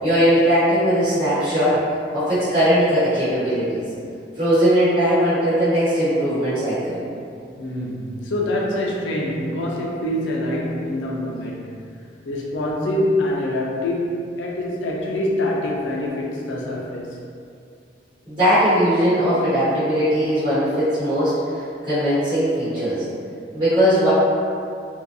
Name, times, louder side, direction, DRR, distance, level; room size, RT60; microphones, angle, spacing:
voice 1, 0.0-1.8 2.1-3.8 4.4-7.0 18.3-23.0 23.5-24.1, equal, 30° right, -16 dB, 1.1 m, -19 dB
voice 2, 7.6-11.8 12.3-17.2, left 1 dB, 75° left, -2 dB, 0.4 m, -25 dB
2.6 x 2.2 x 2.6 m, 2.4 s
head